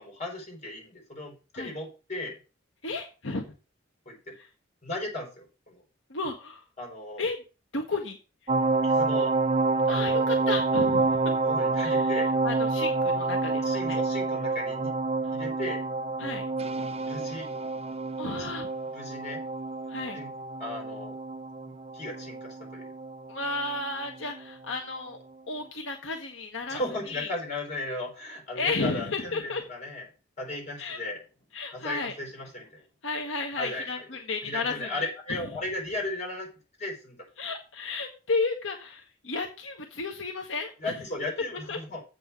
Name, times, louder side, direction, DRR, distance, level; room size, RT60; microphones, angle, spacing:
voice 1, 0.0-2.4 4.0-4.3 4.8-5.8 6.8-7.3 8.7-9.3 9.9-10.3 11.4-12.3 13.6-14.9 15.3-15.9 17.0-17.5 18.4-18.5 18.9-19.4 20.1-20.3 20.6-21.2 21.6-22.9 26.7-30.1 30.4-31.2 31.7-32.8 33.6-34.0 34.4-36.5 36.8-37.3 40.8-42.0, left 1 dB, 40° left, 0 dB, 5.0 m, -36 dB
voice 2, 2.8-3.4 6.1-6.6 7.2-7.4 7.7-8.2 9.9-11.3 11.8-12.1 12.4-14.0 16.2-16.4 18.2-18.7 19.9-20.2 23.3-25.2 25.5-26.8 27.1-27.3 28.5-29.6 30.8-31.0 31.5-32.1 33.0-35.1 37.4-40.9 41.7-41.8, left 3 dB, 80° left, 3 dB, 1.3 m, -33 dB
sound 1, 8.5-24.0 24.4-24.5, right 3 dB, 30° right, 0.5 m, -28 dB
7.8 x 5.5 x 7.3 m, 0.33 s
head